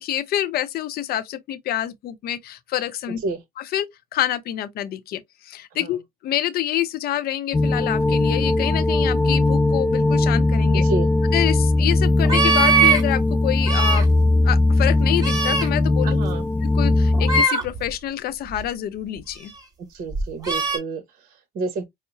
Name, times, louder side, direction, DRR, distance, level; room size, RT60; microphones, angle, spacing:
voice 1, 0.0-3.2 3.6-10.8 11.3-14.1 14.4-16.2 16.6-19.5, left 12 dB, 65° left, 0.6 m, -27 dB
sound 1, 7.5-17.4, left 2 dB, 10° left, 0.4 m, -19 dB
voice 2, 10.7-11.1 16.0-16.5 19.9-21.8, right 3 dB, 55° right, 1.0 m, -29 dB
sound 2, 12.2-13.0 13.6-14.0 15.2-15.7 17.1-17.9 18.5-18.7 20.1-20.8, right 4 dB, 20° right, 2.1 m, -20 dB
5.5 x 2.0 x 2.7 m
cardioid pair, 110°, 17 cm